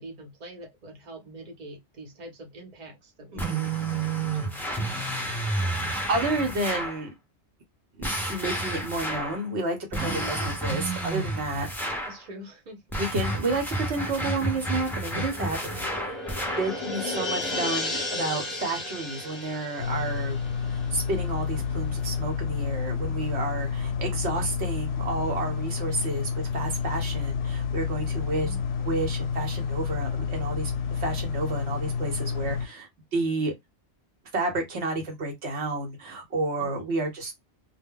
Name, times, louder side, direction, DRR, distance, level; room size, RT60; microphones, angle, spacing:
voice 1, 0.0-4.8 12.0-12.8 16.5-16.9 28.4-29.0 36.6-37.0, right 1 dB, 45° right, 0.9 m, -45 dB
voice 2, 3.3-3.7 6.1-7.1 8.0-11.7 13.0-16.2 16.6-20.4 20.7-28.5 28.8-33.5 34.3-37.4, right 2 dB, 75° right, 1.1 m, -31 dB
sound 1, 3.4-7.0 8.0-9.4 9.9-12.2 12.9-16.8, right 2 dB, 5° left, 0.4 m, -30 dB
sound 2, 14.7-21.7 22.0-22.1, left 2 dB, 25° left, 0.8 m, -34 dB
sound 3, 19.8-32.7, left 6 dB, 70° left, 0.8 m, -29 dB
2.2 x 2.1 x 3.5 m
omnidirectional pair, 1.2 m